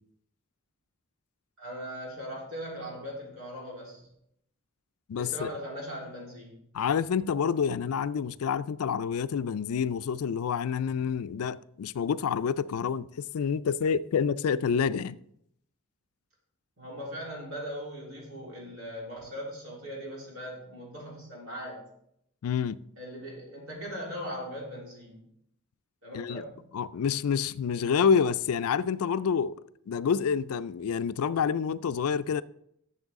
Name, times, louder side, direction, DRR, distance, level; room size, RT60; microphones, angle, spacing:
voice 1, 1.6-4.1 5.2-6.6 16.8-21.8 23.0-25.2 26.0-26.6, equal, 70° right, 3.6 m, -39 dB
voice 2, 5.1-5.5 6.7-15.2 22.4-22.8 26.1-26.4 26.7-29.6 29.9-32.4, left 6 dB, 75° left, 0.4 m, -28 dB
12.0 x 7.2 x 3.6 m
head